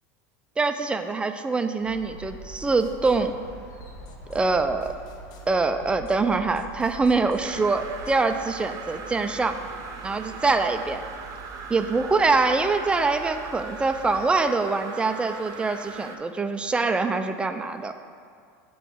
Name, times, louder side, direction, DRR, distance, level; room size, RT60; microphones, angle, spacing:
voice 1, 0.6-3.3 4.3-4.9 5.5-9.6 10.0-11.0 11.7-17.9, right 3 dB, 10° right, 8 dB, 0.4 m, -24 dB
sound 1, 1.8-14.3, right 4 dB, 70° left, 1.8 m, -46 dB
sound 2, 2.0-8.2, left 4 dB, 50° left, 0.6 m, -47 dB
sound 3, 7.4-16.2, right 4 dB, 40° right, 0.7 m, -40 dB
7.7 x 3.1 x 6.2 m, 2.2 s
supercardioid pair, 120°, 9 cm